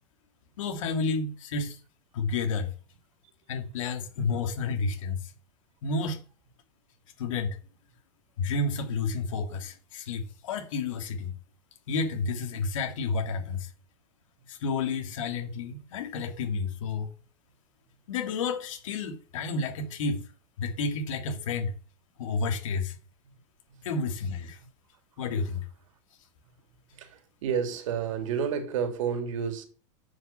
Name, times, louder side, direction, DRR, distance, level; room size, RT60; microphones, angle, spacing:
voice 1, 0.6-1.8 2.1-2.7 3.5-5.3 5.8-6.2 7.2-7.6 8.4-11.3 11.9-13.7 14.5-17.1 18.1-20.3 20.6-21.7 22.2-22.9 23.8-24.6 25.2-25.6, left 4 dB, 75° left, 2.8 m, -30 dB
voice 2, 26.9-29.6, right 7 dB, 75° right, 3.1 m, -30 dB
9.4 x 5.9 x 7.4 m
supercardioid pair, 160°, 17 cm